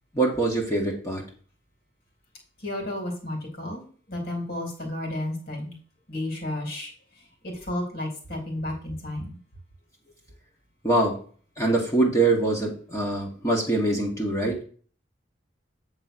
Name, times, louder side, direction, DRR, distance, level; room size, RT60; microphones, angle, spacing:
voice 1, 0.1-1.2 10.8-11.2 11.6-14.6, right 2 dB, 15° left, -2 dB, 1.8 m, -24 dB
voice 2, 2.6-5.7 6.1-6.9 7.4-9.4, left 1 dB, 50° left, 2 dB, 3.1 m, -32 dB
9.1 x 4.0 x 6.1 m, 0.42 s
head